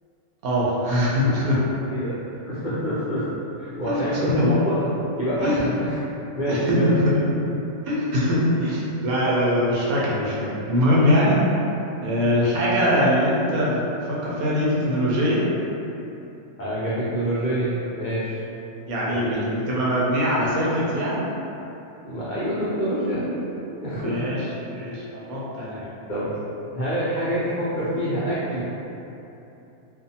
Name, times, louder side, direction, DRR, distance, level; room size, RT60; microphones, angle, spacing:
voice 1, 0.4-1.6 3.8-4.3 5.4-5.6 6.5-7.1 7.9-11.4 12.0-13.8 14.1-15.4 18.9-21.2 24.0-24.4 24.7-25.9, equal, 80° right, -6 dB, 1.1 m, -22 dB
voice 2, 2.5-3.3 3.6-4.8 5.2-6.0 6.4-6.9 16.6-18.4 19.1-19.5 22.0-23.3 23.8-24.2 26.1-26.3 26.7-28.6, equal, 85° left, -11 dB, 0.4 m, -26 dB
2.5 x 2.4 x 2.6 m, 3.0 s
omnidirectional pair, 1.5 m